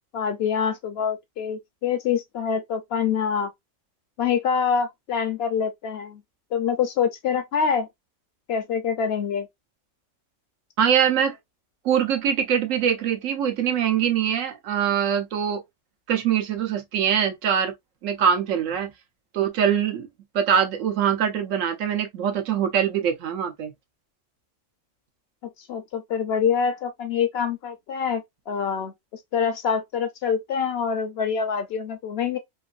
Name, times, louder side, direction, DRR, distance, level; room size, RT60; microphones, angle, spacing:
voice 1, 0.1-3.5 4.2-6.2 6.5-7.9 8.5-9.5 25.6-28.9 29.3-32.4, left 7 dB, 65° left, 0.7 m, -25 dB
voice 2, 10.8-11.4 11.8-15.6 16.1-17.7 18.0-18.9 19.3-20.1 20.3-23.7, right 8 dB, 85° right, 1.1 m, -23 dB
3.1 x 2.5 x 2.4 m
omnidirectional pair, 1.3 m